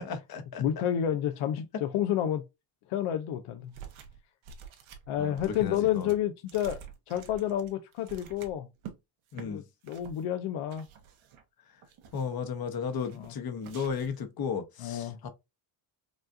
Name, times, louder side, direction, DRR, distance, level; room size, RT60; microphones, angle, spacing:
voice 1, 0.0-0.6 5.2-6.1 9.3-9.6 12.1-15.3, left 6 dB, 45° left, 1.0 m, -34 dB
voice 2, 0.6-2.4 2.9-3.7 5.1-6.8 7.1-8.7 9.4-10.9 13.1-13.3 14.8-15.2, left 10 dB, 75° left, 0.7 m, -30 dB
sound 1, 3.7-4.2 4.4-9.0 9.3-9.5 9.8-10.2 10.7-11.4 11.8-12.4 12.9-13.3 13.6-14.2, right 7 dB, 70° right, 1.2 m, -48 dB
5.2 x 2.5 x 2.5 m
cardioid pair, 110°, 49 cm